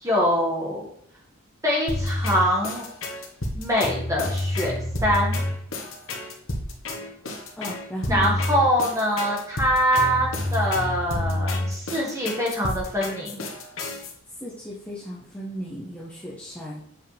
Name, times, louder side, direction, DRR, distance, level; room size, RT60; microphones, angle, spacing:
voice 1, 0.0-0.8 1.6-2.9 3.5-4.7 5.0-5.4 8.1-13.5, equal, 15° right, -3 dB, 2.0 m, -24 dB
sound 1, 1.9-14.1, left 1 dB, 70° left, 1.4 m, -29 dB
voice 2, 7.6-8.4 14.4-16.8, equal, 5° left, -6 dB, 1.1 m, -35 dB
7.7 x 5.3 x 3.5 m, 0.68 s
head